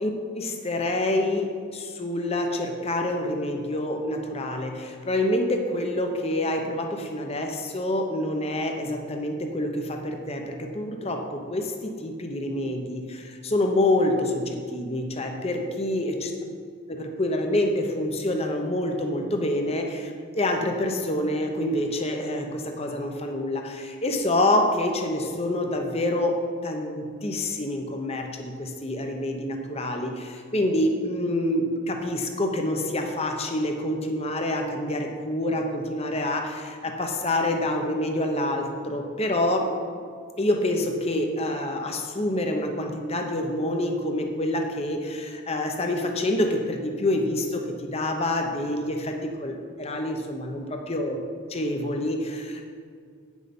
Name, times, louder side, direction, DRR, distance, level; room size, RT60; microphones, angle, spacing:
voice 1, 0.0-16.3 16.9-26.3 26.6-39.7 40.4-51.2 51.5-52.7, left 1 dB, 30° left, 3 dB, 0.9 m, -27 dB
9.0 x 6.3 x 5.3 m, 2.1 s
head